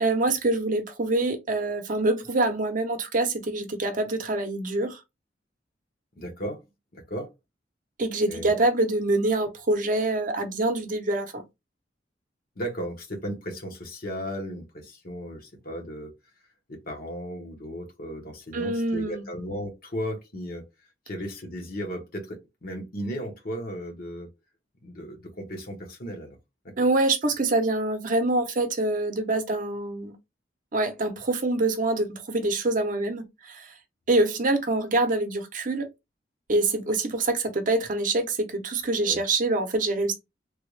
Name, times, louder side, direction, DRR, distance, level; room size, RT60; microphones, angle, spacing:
voice 1, 0.0-5.0 8.0-11.4 18.5-19.3 26.8-30.1 30.7-33.7 34.1-35.9 36.5-40.1, right 2 dB, 45° right, 0.7 m, -25 dB
voice 2, 6.1-6.6 6.9-7.3 8.3-8.6 12.6-16.1 16.7-20.6 21.1-24.3 24.8-26.4 26.6-26.8 39.0-39.2, equal, 55° left, 1.0 m, -35 dB
3.3 x 2.3 x 3.2 m
head